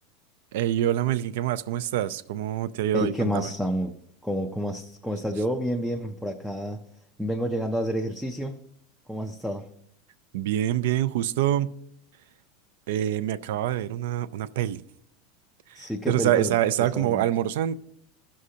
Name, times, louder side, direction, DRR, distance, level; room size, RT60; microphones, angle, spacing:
voice 1, 0.5-3.5 10.3-11.8 12.9-14.8 15.7-17.7, right 12 dB, 65° right, 0.4 m, -26 dB
voice 2, 2.9-4.0 4.2-6.9 7.2-8.6 9.1-9.7 15.8-16.5 16.8-17.2, equal, ahead, 0.4 m, -29 dB
16.0 x 6.4 x 2.8 m
supercardioid pair, 180°, 0 cm